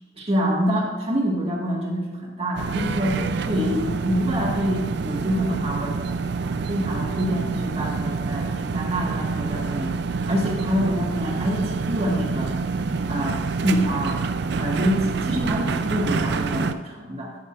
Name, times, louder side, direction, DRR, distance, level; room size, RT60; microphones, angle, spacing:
voice 1, 0.2-3.2 3.5-6.0 6.4-9.9 10.3-12.6 13.1-14.2 14.6-17.4, equal, 35° right, -2 dB, 1.6 m, -26 dB
sound 1, 2.6-16.7, right 4 dB, 60° right, 0.4 m, -27 dB
12.0 x 6.5 x 2.4 m, 1.4 s
head